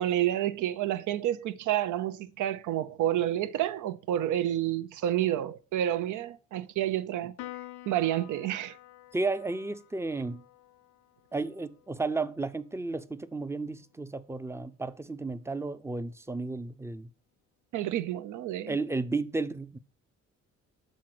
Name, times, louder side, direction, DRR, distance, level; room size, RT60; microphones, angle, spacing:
voice 1, 0.0-7.3 7.9-8.8 17.7-18.8, right 12 dB, 80° right, 0.6 m, -29 dB
Piano, 7.4-14.1, left 14 dB, 85° left, 0.5 m, -50 dB
voice 2, 9.1-10.4 11.3-17.1 18.7-19.8, right 3 dB, 10° right, 0.5 m, -33 dB
6.3 x 3.8 x 5.9 m
cardioid pair, 90°, 30 cm